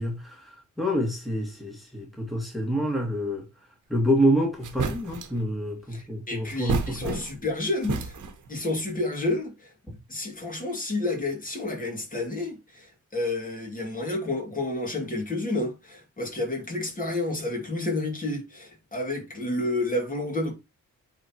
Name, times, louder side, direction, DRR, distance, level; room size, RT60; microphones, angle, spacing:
voice 1, 0.0-3.4 3.9-7.2, equal, ahead, 2.0 m, -27 dB
sound 1, 4.2-4.3 4.6-5.4 6.5-7.5 7.8-8.5, right 5 dB, 80° right, 1.4 m, -31 dB
voice 2, 5.9-8.2 8.5-9.7 10.1-20.6, left 2 dB, 25° left, 2.6 m, -30 dB
8.7 x 4.1 x 3.0 m
cardioid pair, 110°, 30 cm